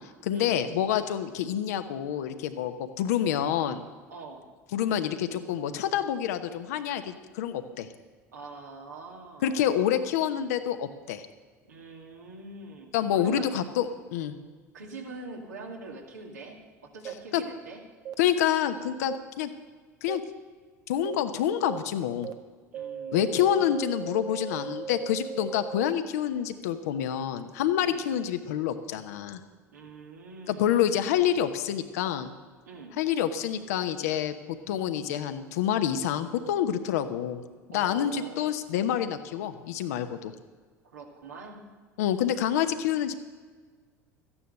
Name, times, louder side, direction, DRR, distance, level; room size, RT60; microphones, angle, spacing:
voice 1, 0.2-3.8 4.7-7.9 9.4-11.2 12.9-14.3 17.3-17.4 18.2-19.5 20.0-20.2 20.9-22.3 23.1-29.4 30.5-32.3 33.0-34.4 34.7-37.4 37.7-40.3 42.0-43.1, left 10 dB, 70° left, 9 dB, 1.0 m, -27 dB
voice 2, 4.1-4.5 8.3-9.7 11.7-13.5 14.7-16.6 16.8-17.8 22.7-23.6 27.8-28.0 29.7-30.7 32.7-32.9 37.7-38.5 40.9-41.6, right 3 dB, 85° right, 0 dB, 2.3 m, -44 dB
sound 1, 17.0-17.1 18.0-18.1 19.1-19.2 20.1-20.2 21.0-21.1 21.7-21.8 22.2-22.3 22.7-25.9, right 7 dB, 45° right, 0.9 m, -37 dB
14.0 x 10.0 x 6.7 m, 1.5 s
hypercardioid pair, 70°, 9 cm